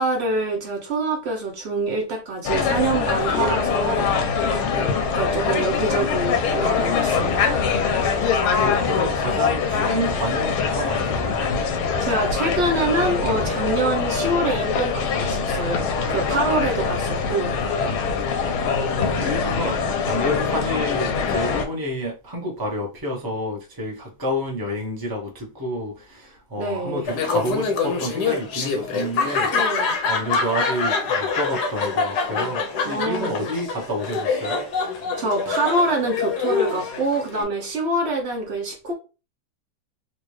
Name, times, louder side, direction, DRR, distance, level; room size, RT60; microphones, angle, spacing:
voice 1, 0.0-7.7 12.0-17.7 26.6-27.1 29.5-29.9 32.8-33.5 34.9-38.9, right 2 dB, 70° right, 0.6 m, -26 dB
sound 1, 2.4-21.6, left 5 dB, 80° left, 1.6 m, -23 dB
voice 2, 8.2-11.5 18.9-34.6, equal, 20° right, 0.5 m, -29 dB
Laughter, 27.1-37.4, left 5 dB, 65° left, 1.1 m, -25 dB
4.1 x 2.5 x 3.1 m
omnidirectional pair, 2.3 m